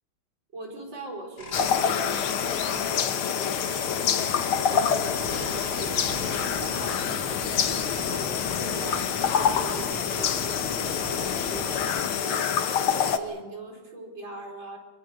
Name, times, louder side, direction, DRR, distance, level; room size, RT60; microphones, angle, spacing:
voice 1, 0.5-7.0 7.6-12.4 12.9-14.8, right 2 dB, 60° right, 1 dB, 5.1 m, -41 dB
sound 1, 1.4-6.5, left 2 dB, 50° left, 3.1 m, -40 dB
sound 2, 1.5-13.2, left 8 dB, 85° left, 2.0 m, -26 dB
sound 3, 5.1-12.0, equal, 5° right, 5.7 m, -38 dB
25.5 x 22.0 x 6.5 m, 1.3 s
omnidirectional pair, 2.3 m